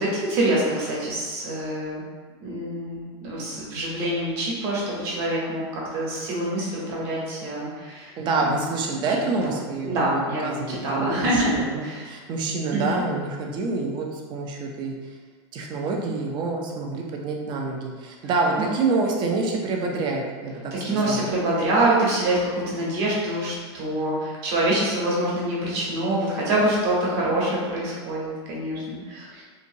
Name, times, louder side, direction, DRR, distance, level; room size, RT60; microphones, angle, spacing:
voice 1, 0.0-2.0 2.4-8.7 9.1-9.6 9.8-11.6 11.8-12.1 12.7-13.0 18.6-18.7 20.8-29.4, right 1 dB, 55° right, -4 dB, 1.0 m, -25 dB
voice 2, 8.2-15.0 15.5-20.7 21.0-21.2, right 3 dB, 35° right, 1 dB, 0.5 m, -27 dB
2.8 x 2.6 x 2.6 m, 1.5 s
supercardioid pair, 130°, 14 cm